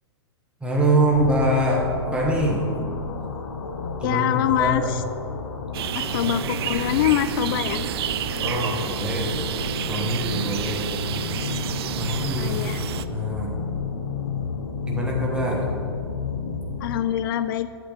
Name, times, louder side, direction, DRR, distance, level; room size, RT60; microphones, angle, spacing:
voice 1, 0.6-2.7 4.0-4.3 4.5-4.9 6.1-6.3 8.4-9.4 9.9-10.9 12.0-12.6 13.1-13.5 14.8-15.7, right 1 dB, 5° right, -2 dB, 1.4 m, -24 dB
sound 1, 1.0-17.2, left 4 dB, 75° left, 0.9 m, -32 dB
voice 2, 4.0-5.0 5.9-7.9 12.4-12.8 16.8-17.7, left 11 dB, 50° left, 13 dB, 0.4 m, -24 dB
sound 2, 5.7-13.0, right 11 dB, 65° right, 0.4 m, -30 dB
8.8 x 7.9 x 4.1 m, 2.5 s
hypercardioid pair, 115°, 14 cm